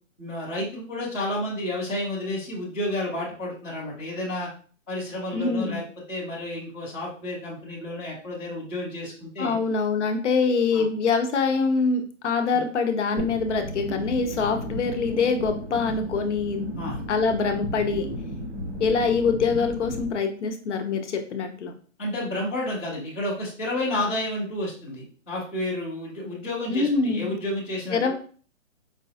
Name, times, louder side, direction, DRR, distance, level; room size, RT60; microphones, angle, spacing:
voice 1, 0.2-4.5 4.9-9.6 10.7-10.9 12.5-12.6 16.7-17.0 22.0-28.1, left 1 dB, 10° left, -12 dB, 0.5 m, -31 dB
voice 2, 5.3-5.8 9.4-16.7 17.1-18.1 18.8-21.7 26.7-27.4 27.9-28.1, left 4 dB, 60° left, 5 dB, 0.7 m, -24 dB
sound 1, 13.2-20.1, equal, 25° right, 0.9 m, -34 dB
4.8 x 2.2 x 2.7 m, 0.41 s
hypercardioid pair, 170°, 39 cm